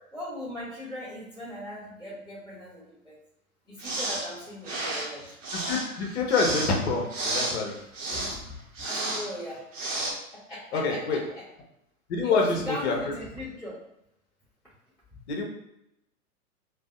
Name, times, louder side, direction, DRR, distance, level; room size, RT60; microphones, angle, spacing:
voice 1, 0.1-3.2 3.6-5.3 8.1-9.7 10.3-11.4 12.2-13.7, equal, ahead, -16 dB, 1.1 m, -38 dB
sound 1, 3.8-4.3 4.6-8.4 8.7-9.3 9.7-10.1, right 2 dB, 60° right, 0.8 m, -32 dB
voice 2, 5.7-7.7 10.7-11.2 12.1-12.9 15.3-15.4, left 4 dB, 45° left, 0 dB, 0.7 m, -26 dB
2.6 x 2.1 x 2.4 m, 0.83 s
figure-of-eight pair, 105°, 44 cm